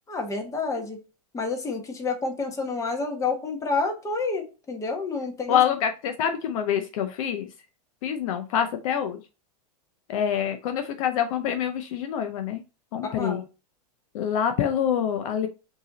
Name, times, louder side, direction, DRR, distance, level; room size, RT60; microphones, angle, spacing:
voice 1, 0.1-1.0 1.3-5.6 13.0-13.5, left 4 dB, 15° left, 3 dB, 1.2 m, -29 dB
voice 2, 5.5-7.5 8.0-9.2 10.1-12.6 12.9-13.4 14.1-15.5, left 9 dB, 60° left, 7 dB, 0.6 m, -26 dB
4.7 x 2.9 x 3.9 m, 0.31 s
hypercardioid pair, 115°, 20 cm